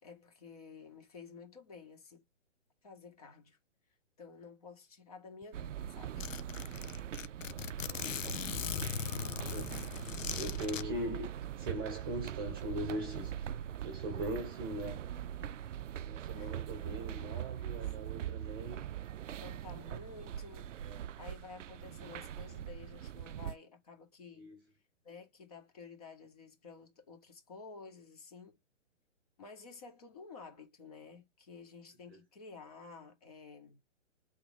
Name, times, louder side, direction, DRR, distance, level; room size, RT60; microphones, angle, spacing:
voice 1, 0.0-2.2 2.8-3.6 4.2-6.3 15.4-15.6 16.4-16.5 17.2-17.8 19.4-20.7 21.2-24.5 25.0-28.6 29.4-33.8, left 4 dB, 30° left, 2.2 m, -52 dB
Zipper (clothing), 5.4-5.5 5.8-5.9 6.2-10.8, left 7 dB, 80° left, 1.0 m, -39 dB
sound 1, 5.5-23.6, right 10 dB, 75° right, 0.5 m, -42 dB
voice 2, 8.0-8.4 9.5-10.0 10.3-13.5 13.8-15.1 16.0-18.8 20.8-21.2 24.3-24.6 32.1-32.2, right 1 dB, 20° right, 1.2 m, -41 dB
8.4 x 4.1 x 3.7 m
hypercardioid pair, 180°, 38 cm